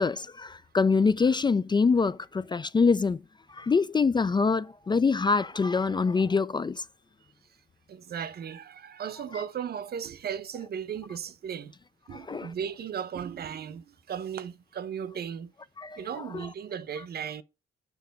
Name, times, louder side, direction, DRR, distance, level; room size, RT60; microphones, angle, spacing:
voice 1, 0.0-3.2 3.6-6.8 12.1-12.5 15.8-16.0 16.3-16.5, left 4 dB, 25° left, 0.4 m, -25 dB
voice 2, 7.9-11.7 12.1-15.5 16.0-17.4, right 8 dB, 55° right, 0.8 m, -36 dB
7.0 x 5.6 x 5.2 m
cardioid pair, 90°, 20 cm